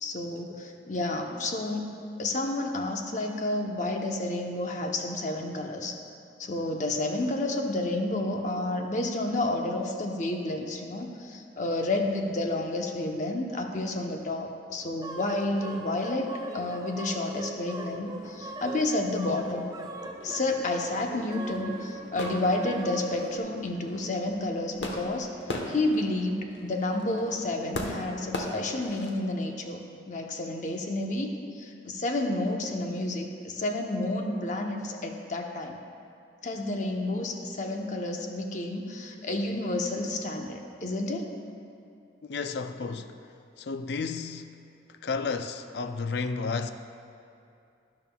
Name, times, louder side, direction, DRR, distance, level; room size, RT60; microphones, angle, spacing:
voice 1, 0.0-1.9 2.2-5.9 6.4-19.6 20.2-25.3 25.7-35.8 36.4-41.3, left 2 dB, 45° left, 0.8 m, -30 dB
sound 1, 15.0-23.4, right 2 dB, 20° right, 0.5 m, -40 dB
sound 2, 17.8-29.1, left 1 dB, 80° left, 1.0 m, -41 dB
voice 2, 42.2-43.1 43.6-44.5 44.9-46.7, left 4 dB, 65° left, 0.4 m, -32 dB
12.5 x 10.5 x 2.3 m
head